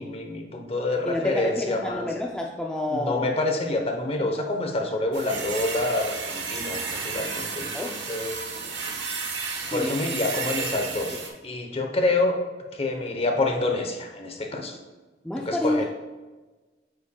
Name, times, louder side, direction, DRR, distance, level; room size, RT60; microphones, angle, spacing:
voice 1, 0.0-2.1 2.9-8.3 9.7-12.3 12.7-14.8 15.5-15.9, left 2 dB, 35° left, 3 dB, 0.9 m, -27 dB
voice 2, 1.0-3.3 3.7-3.9 4.2-4.3 7.7-8.0 9.7-10.1 10.7-10.8 15.2-15.9, left 1 dB, 5° left, -1 dB, 0.4 m, -29 dB
sound 1, 5.1-11.3, right 5 dB, 75° right, 1.1 m, -32 dB
8.8 x 5.8 x 2.3 m, 1.2 s
head